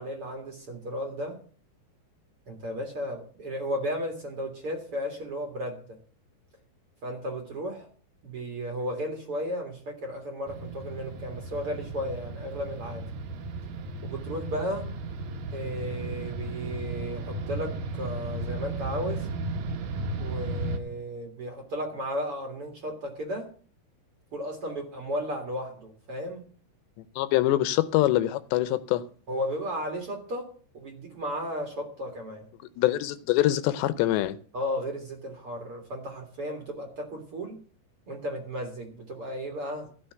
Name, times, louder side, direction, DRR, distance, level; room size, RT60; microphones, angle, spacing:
voice 1, 0.0-1.4 2.5-6.0 7.0-7.9 8.2-13.1 14.0-14.9 15.5-19.3 20.2-23.5 24.3-26.5 29.3-32.5 34.5-37.6 38.1-39.9, equal, 45° right, 3 dB, 2.1 m, -34 dB
sound 1, 10.5-20.8, right 2 dB, 65° right, 1.9 m, -35 dB
voice 2, 27.2-29.0 32.8-34.4, left 14 dB, 80° left, 14 dB, 2.9 m, -24 dB
16.0 x 6.4 x 7.8 m, 0.42 s
omnidirectional pair, 5.1 m